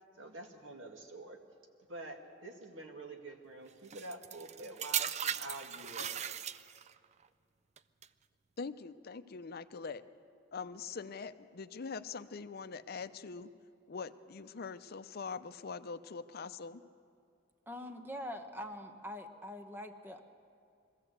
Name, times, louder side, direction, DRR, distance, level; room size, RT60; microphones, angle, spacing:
voice 1, 0.2-1.4 1.9-6.2, right 2 dB, 85° right, 4 dB, 2.0 m, -47 dB
sound 1, 3.9-7.0 7.8-8.1, right 9 dB, 35° right, 0.4 m, -37 dB
voice 2, 8.6-10.0 10.5-13.5 13.9-16.8, left 5 dB, 55° left, 12 dB, 0.6 m, -43 dB
voice 3, 17.7-20.2, left 1 dB, 10° right, 7 dB, 1.1 m, -44 dB
22.0 x 14.5 x 8.0 m, 2.4 s
head